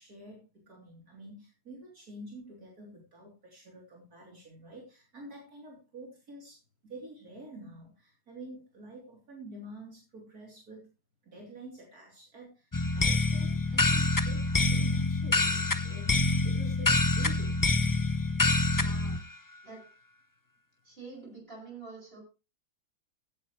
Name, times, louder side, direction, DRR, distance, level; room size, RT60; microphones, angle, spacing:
voice 1, 0.0-10.9 11.2-16.1 16.4-18.2, right 1 dB, 70° right, -2 dB, 4.0 m, -48 dB
sound 1, 12.7-19.2, left 2 dB, 30° left, 0.3 m, -26 dB
voice 2, 18.7-19.2 19.6-19.9 20.8-22.2, right 3 dB, 35° right, 0 dB, 7.2 m, -47 dB
16.5 x 10.0 x 3.2 m, 0.30 s
omnidirectional pair, 1.7 m